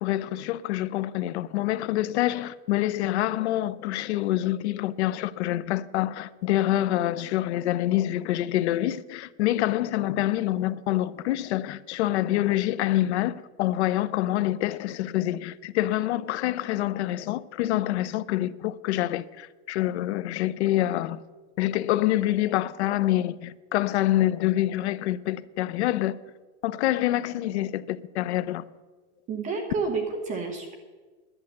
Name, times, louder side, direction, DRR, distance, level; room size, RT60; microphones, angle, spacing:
voice 1, 0.0-21.2 21.6-26.2 26.6-28.6, left 14 dB, 60° left, 0.6 m, -26 dB
voice 2, 29.3-30.8, right 4 dB, 20° right, 1.1 m, -30 dB
11.0 x 9.6 x 7.8 m
supercardioid pair, 175°, 37 cm